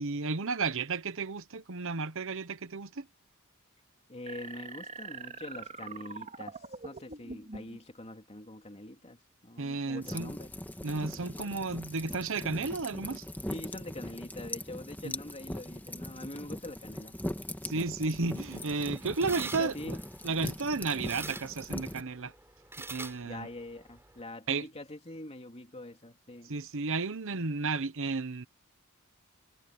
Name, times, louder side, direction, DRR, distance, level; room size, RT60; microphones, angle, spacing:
voice 1, 0.0-3.1 9.6-10.3 10.8-13.2 15.0-15.1 17.6-20.0 20.2-22.3 22.8-23.5 24.5-24.7 26.5-28.5, right 4 dB, 65° right, 1.0 m, -33 dB
voice 2, 4.1-10.5 13.5-17.2 19.5-20.0 23.2-26.6, left 1 dB, 30° left, 3.1 m, -44 dB
sound 1, 4.3-7.8, right 3 dB, 35° right, 2.7 m, -43 dB
sound 2, 10.0-22.0, left 1 dB, 10° left, 1.7 m, -40 dB
sound 3, 18.1-24.2, right 3 dB, 10° right, 4.6 m, -47 dB
head